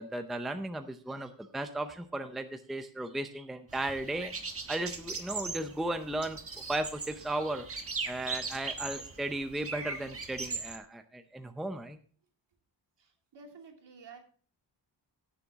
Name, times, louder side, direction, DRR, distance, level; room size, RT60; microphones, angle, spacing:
voice 1, 0.0-4.3 4.7-6.4 6.7-7.6 8.1-12.0, right 1 dB, ahead, 7 dB, 0.6 m, -35 dB
sound 1, 3.7-10.8, right 4 dB, 30° right, 1.3 m, -39 dB
voice 2, 13.0-14.2, right 4 dB, 65° right, 2 dB, 2.7 m, -51 dB
17.0 x 7.0 x 3.6 m, 0.43 s
wide cardioid pair, 175°, 44 cm